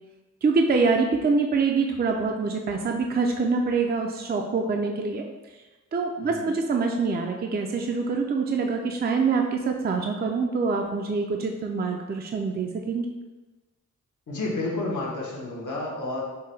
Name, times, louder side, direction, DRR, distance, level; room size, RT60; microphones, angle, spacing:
voice 1, 0.4-5.2 5.9-13.1, right 4 dB, 35° right, 2 dB, 0.4 m, -25 dB
voice 2, 14.3-16.2, left 2 dB, 85° left, -3 dB, 1.0 m, -30 dB
5.5 x 2.2 x 3.2 m, 1.2 s
cardioid pair, 60°, 30 cm